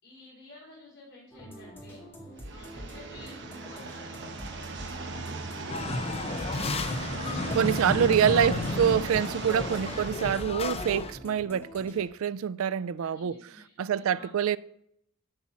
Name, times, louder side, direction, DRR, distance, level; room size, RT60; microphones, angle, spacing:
voice 1, 0.0-6.0 6.9-8.0 12.6-14.3, left 2 dB, 55° left, 4.4 m, -52 dB
sound 1, 1.3-12.0, equal, 10° left, 1.9 m, -46 dB
sound 2, 2.4-10.4, right 3 dB, 55° right, 1.0 m, -38 dB
sound 3, 5.7-11.1, left 2 dB, 30° left, 0.6 m, -32 dB
voice 2, 7.5-13.3 13.8-14.6, right 8 dB, 80° right, 0.3 m, -26 dB
12.5 x 4.2 x 7.3 m
head